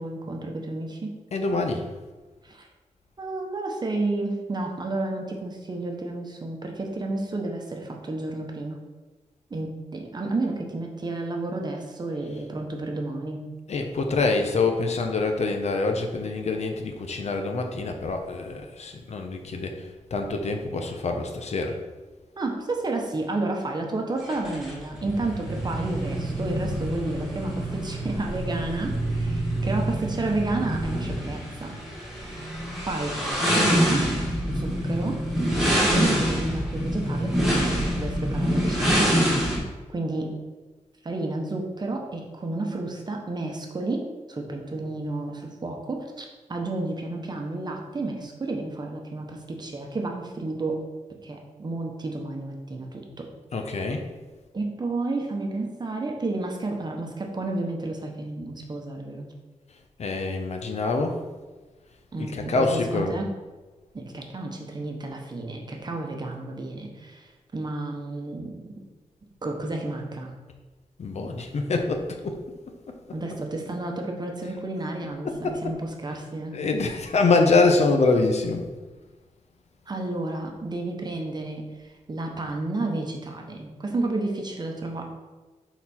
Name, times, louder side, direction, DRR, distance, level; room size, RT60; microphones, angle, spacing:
voice 1, 0.0-1.2 2.4-2.7 3.2-8.8 9.5-13.5 22.4-31.8 32.2-32.5 32.8-33.1 33.5-34.1 34.4-35.2 35.7-39.2 39.9-40.4 41.0-50.8 51.2-53.3 54.5-59.3 62.1-63.3 63.9-68.7 69.4-70.3 73.1-76.6 79.9-85.0, right 2 dB, 35° right, 2 dB, 0.9 m, -31 dB
voice 2, 1.3-1.8 13.7-19.8 20.1-21.8 53.5-54.0 60.0-61.2 62.2-63.1 71.0-72.4 74.4-74.5 75.2-75.7 76.1-76.2 76.5-78.6, left 3 dB, 60° left, 4 dB, 0.7 m, -25 dB
sound 1, 24.2-39.6, equal, 5° right, 1.9 m, -26 dB
6.6 x 4.0 x 4.3 m, 1.3 s
wide cardioid pair, 145°, 13 cm